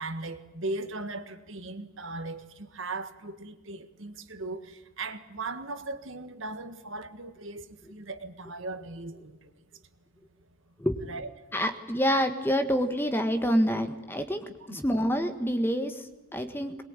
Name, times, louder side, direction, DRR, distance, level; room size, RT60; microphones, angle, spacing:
voice 1, 0.0-9.5 11.1-11.3, right 2 dB, 65° right, 1.7 m, -38 dB
voice 2, 11.5-16.8, equal, 10° left, 1.6 m, -27 dB
22.5 x 21.5 x 9.0 m
head